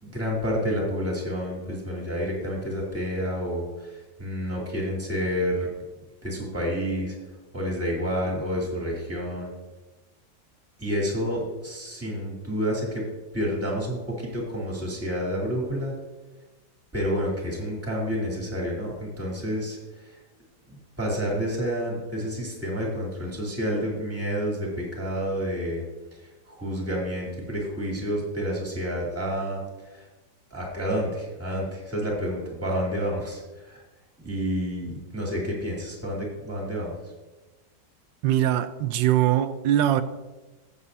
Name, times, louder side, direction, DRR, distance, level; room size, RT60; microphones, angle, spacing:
voice 1, 0.0-5.7 6.2-7.1 7.5-9.5 10.8-13.0 13.3-15.9 16.9-20.2 20.7-25.8 26.1-30.1 30.5-33.8 34.2-36.9, equal, 5° right, -3 dB, 2.7 m, -29 dB
voice 2, 38.2-40.0, right 12 dB, 90° right, 12 dB, 1.3 m, -22 dB
16.5 x 7.0 x 2.8 m, 1.2 s
omnidirectional pair, 2.0 m